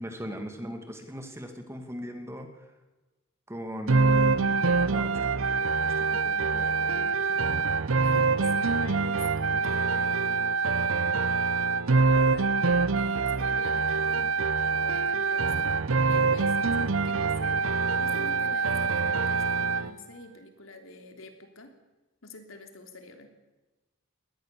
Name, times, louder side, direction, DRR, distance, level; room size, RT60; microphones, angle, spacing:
voice 1, 0.0-2.7 3.5-7.4, equal, 15° right, 6 dB, 2.4 m, -39 dB
sound 1, 3.9-19.9, right 4 dB, 70° right, 0.7 m, -25 dB
voice 2, 8.0-11.2 11.9-12.5 12.9-21.8 22.2-23.3, left 2 dB, 75° left, 6 dB, 3.1 m, -46 dB
22.0 x 18.5 x 6.9 m, 1.1 s
head